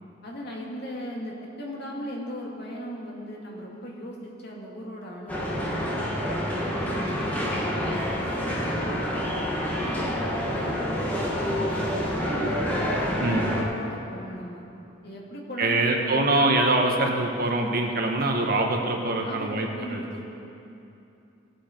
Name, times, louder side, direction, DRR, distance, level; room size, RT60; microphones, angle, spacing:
voice 1, 0.2-6.4 6.7-9.2 9.5-14.6 15.0-16.5 19.2-20.2, equal, 60° left, -2 dB, 2.2 m, -38 dB
sound 1, 5.3-13.6, equal, 10° left, 1.5 m, -28 dB
voice 2, 13.2-13.5 15.6-20.0, right 2 dB, 50° right, 2 dB, 1.2 m, -24 dB
19.0 x 7.7 x 4.5 m, 2.8 s
head